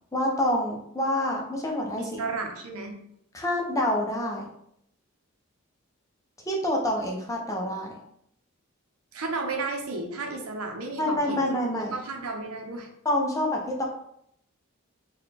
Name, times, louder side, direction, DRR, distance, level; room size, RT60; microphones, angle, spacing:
voice 1, 0.1-2.2 3.3-4.4 6.5-7.9 11.0-11.9 13.0-13.8, left 1 dB, 15° left, -1 dB, 0.5 m, -27 dB
voice 2, 2.0-3.0 9.1-11.4 11.7-12.9, right 3 dB, 85° right, 2 dB, 0.7 m, -33 dB
4.1 x 2.3 x 3.2 m, 0.73 s
head